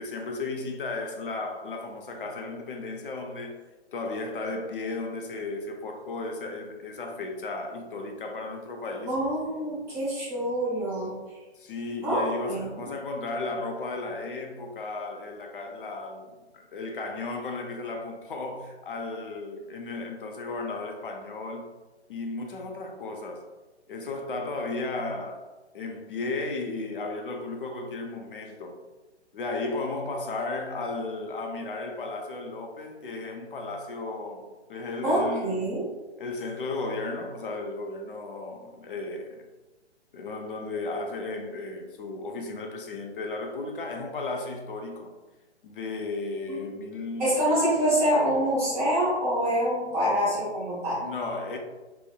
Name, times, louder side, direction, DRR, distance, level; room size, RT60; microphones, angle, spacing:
voice 1, 0.0-3.6 3.9-9.2 11.6-21.7 22.1-23.4 23.9-25.5 25.7-28.8 29.3-35.7 36.2-39.4 40.1-45.2 45.6-47.4 50.3-50.4 51.0-51.6, left 3 dB, 50° left, 0.4 m, -34 dB
voice 2, 9.1-11.1 12.0-12.2 12.5-12.7 35.0-35.8 46.5-46.6 47.2-51.0, equal, 10° right, 0.6 m, -25 dB
2.7 x 2.0 x 2.2 m
figure-of-eight pair, 130°, 35 cm